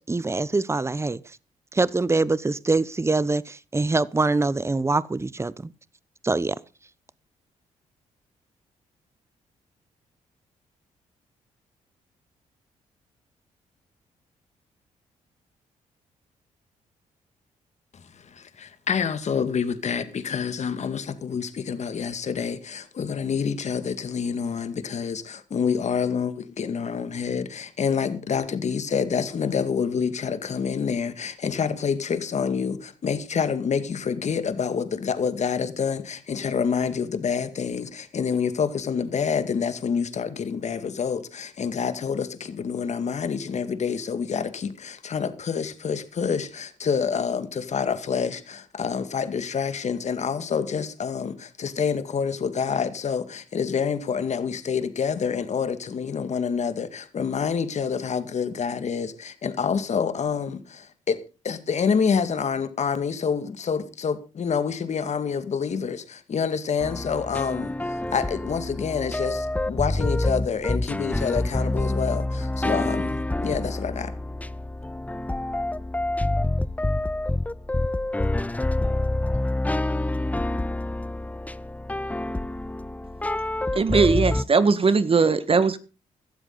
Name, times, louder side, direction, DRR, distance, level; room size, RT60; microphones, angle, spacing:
voice 1, 0.1-1.4 1.7-5.7 6.2-6.6, right 3 dB, 20° right, 0.9 m, -24 dB
voice 2, 17.9-74.1, left 6 dB, 55° left, 2.1 m, -27 dB
sound 1, 66.8-84.4, left 1 dB, 10° left, 0.7 m, -27 dB
voice 3, 83.7-85.8, right 4 dB, 40° right, 1.7 m, -19 dB
16.5 x 12.5 x 4.0 m
supercardioid pair, 60°, 14 cm